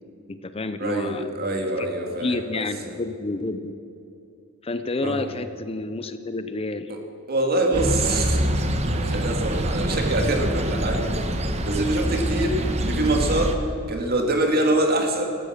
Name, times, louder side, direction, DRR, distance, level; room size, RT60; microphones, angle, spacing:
voice 1, 0.3-1.3 1.8-1.9 2.2-3.7 4.6-6.9, left 2 dB, 30° left, 10 dB, 0.6 m, -29 dB
voice 2, 0.8-2.7 5.0-5.2 6.9-7.0 7.3-8.4 9.0-11.1 11.6-13.6 13.9-15.3, right 1 dB, 50° right, 3 dB, 2.3 m, -24 dB
sound 1, 7.7-13.6, right 1 dB, 30° right, 1.1 m, -25 dB
16.5 x 13.5 x 6.5 m, 2.7 s
head